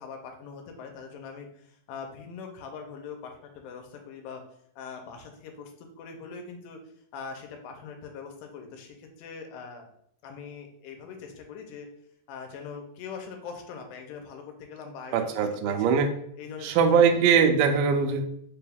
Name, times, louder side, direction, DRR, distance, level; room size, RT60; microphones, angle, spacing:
voice 1, 0.0-4.4 4.8-6.8 7.1-9.9 10.2-11.9 12.3-15.9 16.4-17.2, left 5 dB, 80° left, 3 dB, 2.2 m, -42 dB
voice 2, 15.1-16.1 16.6-18.3, right 6 dB, 85° right, 5 dB, 2.2 m, -21 dB
5.3 x 2.3 x 3.4 m, 0.68 s
omnidirectional pair, 3.9 m